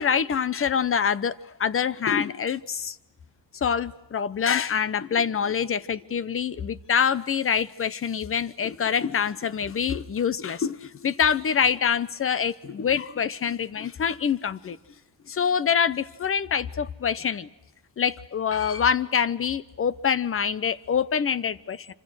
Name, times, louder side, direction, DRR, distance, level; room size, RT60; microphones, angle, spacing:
voice 1, 0.0-1.3 1.6-3.0 3.6-14.8 15.3-17.5 18.0-21.9, left 7 dB, 30° left, 0.9 m, -25 dB
27.0 x 26.0 x 6.3 m
cardioid pair, 140°, 42 cm